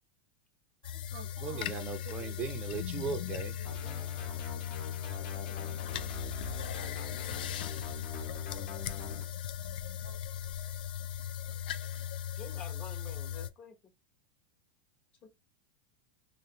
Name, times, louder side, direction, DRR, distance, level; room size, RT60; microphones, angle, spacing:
sound 1, 0.8-13.5, left 10 dB, 85° left, 0.3 m, -38 dB
voice 1, 0.8-2.4 3.6-4.0 5.1-5.6 7.6-7.8 9.0-9.1 10.0-10.5 11.8-11.9, right 5 dB, 80° right, 0.8 m, -52 dB
voice 2, 1.4-3.6, right 7 dB, 25° right, 0.5 m, -38 dB
sound 2, 3.6-9.2, left 2 dB, 50° left, 1.1 m, -44 dB
voice 3, 12.4-13.8 15.2-15.3, left 5 dB, 30° left, 0.8 m, -48 dB
3.2 x 2.5 x 2.9 m
supercardioid pair, 150°, 5 cm